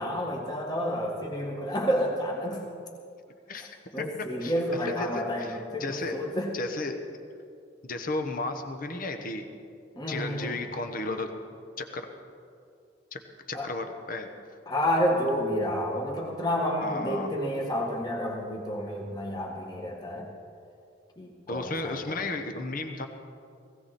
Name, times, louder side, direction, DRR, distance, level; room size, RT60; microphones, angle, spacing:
voice 1, 0.0-2.6 3.5-6.5 10.0-10.6 13.5-13.7 14.7-20.3 21.2-22.2, equal, 20° left, -1 dB, 1.7 m, -30 dB
voice 2, 3.5-4.0 4.4-4.5 4.9-6.2 6.5-7.0 7.8-9.5 10.1-11.4 11.8-12.1 13.1-13.2 13.5-14.3 16.8-17.3 21.5-23.1, left 2 dB, 45° left, 6 dB, 1.2 m, -34 dB
20.0 x 16.5 x 4.3 m, 2.4 s
head